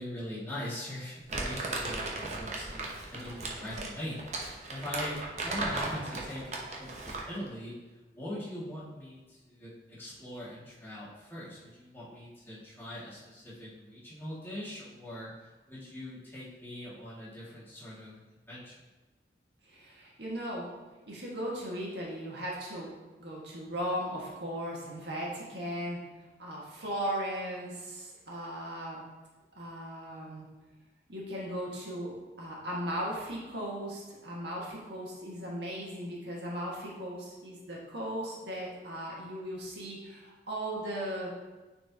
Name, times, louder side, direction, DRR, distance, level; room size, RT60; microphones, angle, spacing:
voice 1, 0.0-7.8 8.1-18.2 18.5-18.8, left 1 dB, 10° left, -9 dB, 2.0 m, -42 dB
Crumpling crinkling, 1.3-7.4, right 2 dB, 40° right, 0.9 m, -36 dB
voice 2, 19.6-20.7 21.1-22.9 23.2-26.0 26.4-29.0 29.5-30.4 31.1-41.3, equal, 75° right, -4 dB, 1.7 m, -37 dB
9.9 x 4.4 x 2.9 m, 1.2 s
head